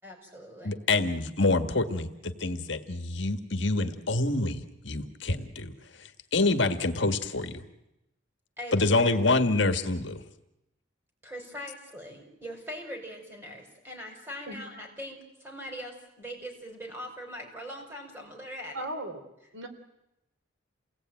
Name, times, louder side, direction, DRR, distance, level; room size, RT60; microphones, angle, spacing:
voice 1, 0.0-0.8 8.6-9.2 11.2-18.9, equal, 10° right, 3 dB, 5.4 m, -41 dB
voice 2, 0.6-7.6 8.7-10.2, left 2 dB, 65° left, 8 dB, 1.7 m, -27 dB
voice 3, 18.7-19.2 19.5-19.7, right 1 dB, 85° right, 6 dB, 3.7 m, -36 dB
28.5 x 18.5 x 9.1 m, 0.90 s
head